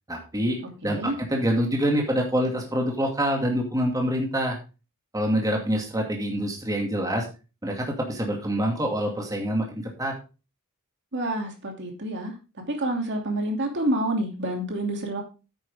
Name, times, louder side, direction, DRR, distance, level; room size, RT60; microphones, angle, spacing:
voice 1, 0.1-4.6 5.1-7.3 7.6-10.1, equal, 15° right, 1 dB, 2.4 m, -26 dB
voice 2, 0.8-1.2 11.1-12.3 12.7-15.2, right 1 dB, 55° right, 3 dB, 2.7 m, -28 dB
9.6 x 9.0 x 3.6 m, 0.31 s
head